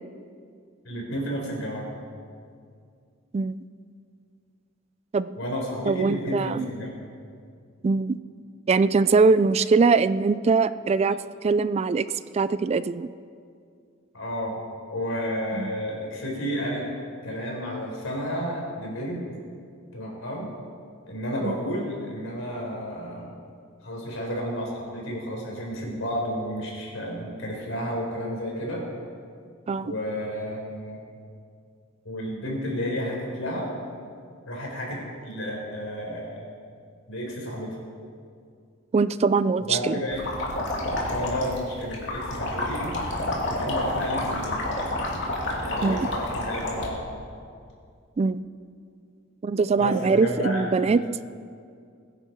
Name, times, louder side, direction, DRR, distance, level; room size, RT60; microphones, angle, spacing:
voice 1, 0.8-1.9 5.3-6.9 14.1-14.6 14.9-16.8 17.2-19.2 19.9-20.5 21.1-23.4 23.8-28.8 29.8-31.0 32.0-33.7 34.4-36.5 37.1-37.8 39.6-40.2 41.1-43.0 43.5-44.6 45.6-47.0 49.8-51.1, equal, 80° left, -1 dB, 4.3 m, -31 dB
voice 2, 5.9-6.7 7.8-8.2 8.7-11.2 11.4-12.1 12.3-13.1 15.5-15.7 21.4-21.6 29.7-29.9 38.9-40.0 45.8-46.1 48.2-48.4 49.4-51.0, right 4 dB, 30° right, 15 dB, 0.3 m, -22 dB
sound 1, 40.1-46.9, left 1 dB, 60° left, 2.8 m, -29 dB
22.0 x 10.0 x 4.6 m, 2.3 s
head